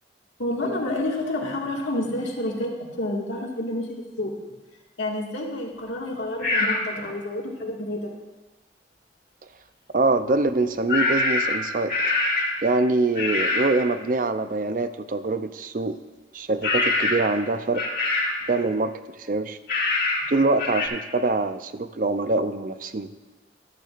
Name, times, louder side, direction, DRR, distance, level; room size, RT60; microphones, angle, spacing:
voice 1, 0.4-4.3 5.0-8.1, left 1 dB, 90° left, -1 dB, 1.9 m, -29 dB
sound 1, 6.4-6.8 10.9-12.6 13.1-13.7 16.6-17.3 17.7-18.4 19.7-20.3 20.6-20.9, left 2 dB, 50° left, 1.9 m, -24 dB
voice 2, 9.9-12.1 12.6-16.0 16.3-17.8 18.5-19.6 20.3-23.1, right 2 dB, 45° right, 11 dB, 0.5 m, -24 dB
14.0 x 12.0 x 2.5 m, 1.2 s
head